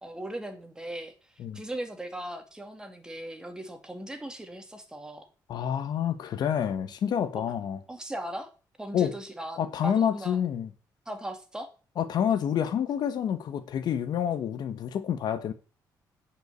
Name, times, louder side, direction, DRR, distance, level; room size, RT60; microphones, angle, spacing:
voice 1, 0.0-1.1 1.5-5.2 7.3-7.4 7.9-8.5 8.8-10.4 11.1-11.7, right 1 dB, 10° right, 2.3 m, -38 dB
voice 2, 5.5-7.8 8.9-9.1 9.6-10.7 12.0-15.5, left 9 dB, 70° left, 1.2 m, -28 dB
9.2 x 5.7 x 8.1 m
cardioid pair, 115°, 7 cm